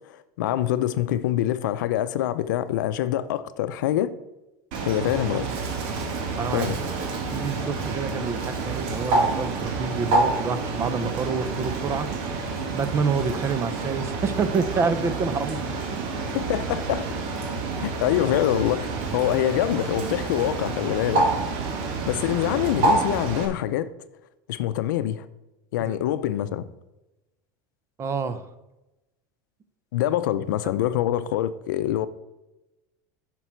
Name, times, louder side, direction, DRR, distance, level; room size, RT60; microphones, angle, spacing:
voice 1, 0.1-4.1 4.8-5.5 6.5-6.8 16.3-17.1 17.8-21.3 21.8-23.9 24.5-25.3 25.7-26.6 29.9-32.1, left 12 dB, 90° left, 0.6 m, -25 dB
Bird, 4.7-23.5, right 3 dB, 60° right, 1.7 m, -28 dB
voice 2, 6.4-6.7 7.3-12.1 12.7-15.6 25.8-26.0 28.0-28.5, right 5 dB, 25° right, 0.7 m, -27 dB
9.9 x 6.0 x 4.6 m
supercardioid pair, 130°, 10 cm